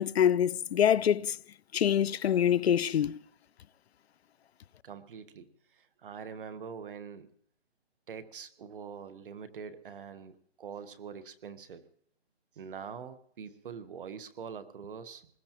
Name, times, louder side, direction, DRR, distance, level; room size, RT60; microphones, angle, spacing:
voice 1, 0.0-1.4 1.7-3.2, left 9 dB, 70° left, 0.6 m, -25 dB
voice 2, 4.8-7.3 8.1-11.8 12.6-15.3, right 6 dB, 55° right, 1.2 m, -44 dB
24.0 x 20.0 x 3.0 m
hypercardioid pair, 160°, 33 cm